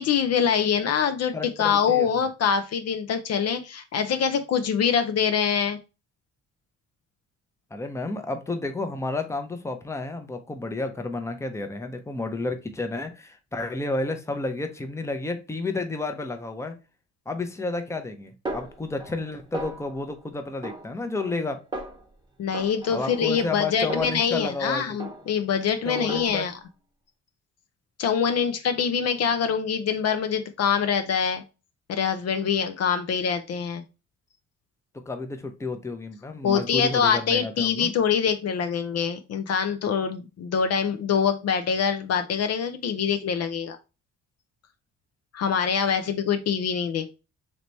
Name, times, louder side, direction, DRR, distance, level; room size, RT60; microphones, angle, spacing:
voice 1, 0.0-5.8 22.4-26.5 28.0-31.4 31.9-33.8 36.4-43.8 45.3-47.2, left 7 dB, 55° left, 8 dB, 0.5 m, -24 dB
voice 2, 1.3-2.1 7.7-16.8 17.3-21.6 22.9-24.8 25.8-26.5 35.1-37.9, left 3 dB, 10° left, 6 dB, 0.7 m, -31 dB
Snare drum, 18.5-19.3 19.5-20.1 20.6-21.4 21.7-22.1 22.5-24.6 25.0-25.5 26.0-26.6, right 2 dB, 15° right, 0.9 m, -38 dB
3.3 x 2.9 x 3.9 m, 0.30 s
cardioid pair, 90°, 30 cm